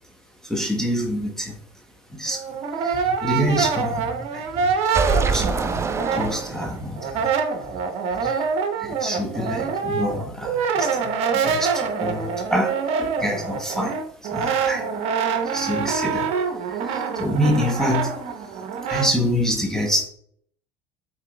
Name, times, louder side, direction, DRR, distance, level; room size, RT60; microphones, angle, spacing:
voice 1, 0.5-1.5 2.2-2.4 2.8-2.9 3.2-4.0 4.3-4.4 5.1-5.9 6.1-7.1 8.2-8.4 9.0-10.9 11.4-12.7 13.0-13.9 14.3-14.8 15.5-16.3 16.9-18.1 18.9-20.1, equal, 5° left, 1 dB, 0.9 m, -25 dB
Brass instrument, 2.3-6.7 7.0-19.1, right 6 dB, 60° right, 0.8 m, -25 dB
sound 1, 2.9-5.8 6.1-6.4 6.7-6.8 7.1-7.3 7.6-8.3, right 4 dB, 45° right, 1.6 m, -39 dB
sound 2, 4.9-7.0, right 4 dB, 25° right, 0.4 m, -24 dB
5.8 x 4.0 x 2.2 m, 0.62 s
hypercardioid pair, 80°, 12 cm